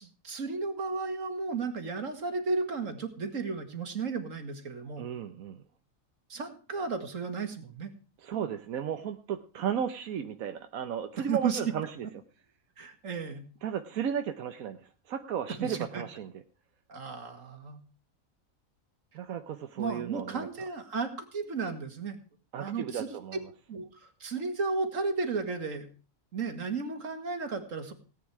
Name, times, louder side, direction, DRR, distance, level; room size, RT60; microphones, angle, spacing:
voice 1, 0.0-5.0 6.3-7.9 11.3-11.6 12.8-13.4 15.6-16.0 16.9-17.8 19.8-22.2 22.5-23.2 23.7-25.9 26.3-27.9, right 4 dB, 65° right, 7 dB, 2.3 m, -34 dB
voice 2, 5.0-5.6 8.2-12.1 13.6-14.8 15.1-16.4 19.1-20.5 22.5-23.4, right 8 dB, 90° right, 7 dB, 1.3 m, -34 dB
17.5 x 9.4 x 4.7 m, 0.37 s
omnidirectional pair, 1.4 m